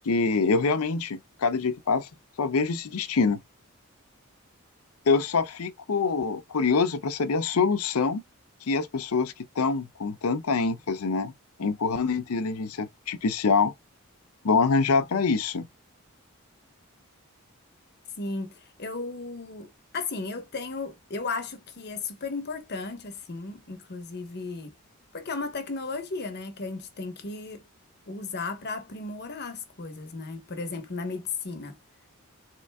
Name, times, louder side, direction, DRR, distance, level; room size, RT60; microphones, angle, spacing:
voice 1, 0.0-2.1 2.4-3.4 5.1-8.2 8.7-11.3 11.6-13.7 14.4-15.7, left 4 dB, 85° left, 0.6 m, -25 dB
voice 2, 18.2-24.7 25.1-27.6 28.1-31.8, left 3 dB, 50° left, 0.9 m, -35 dB
3.7 x 3.2 x 3.4 m
head